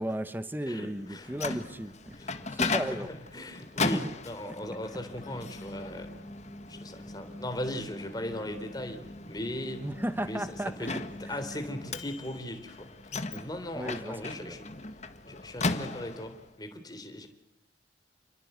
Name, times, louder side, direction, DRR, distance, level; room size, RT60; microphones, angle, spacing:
voice 1, 0.0-2.2 2.5-3.1 3.9-4.0 4.4-4.5 9.8-11.4 13.7-14.6, right 1 dB, 10° right, 12 dB, 1.1 m, -35 dB
voice 2, 0.7-1.6 2.1-3.1 3.3-6.1 6.7-9.8 10.2-10.4 10.8-10.9 11.3-12.9 13.3-14.7 15.2-17.3, left 1 dB, 20° left, 7 dB, 3.7 m, -38 dB
Microwave oven, 1.0-16.5, left 3 dB, 35° left, 1.7 m, -37 dB
29.5 x 21.5 x 8.2 m, 0.75 s
head